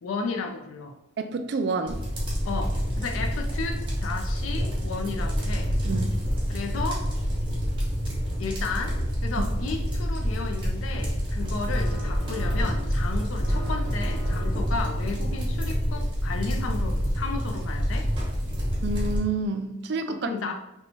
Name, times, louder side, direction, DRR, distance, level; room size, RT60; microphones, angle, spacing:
voice 1, 0.0-1.0 2.4-5.8 6.5-7.1 8.4-18.1 20.1-20.5, left 4 dB, 75° left, 4 dB, 0.4 m, -33 dB
voice 2, 1.2-2.0 5.8-6.1 9.4-9.5 18.8-20.3, right 3 dB, 55° right, 8 dB, 0.3 m, -29 dB
sound 1, 1.9-19.2, equal, 25° right, 1.0 m, -27 dB
sound 2, 11.7-13.1 13.4-14.9, right 2 dB, 25° left, 1.0 m, -41 dB
2.9 x 2.2 x 4.1 m, 0.88 s
head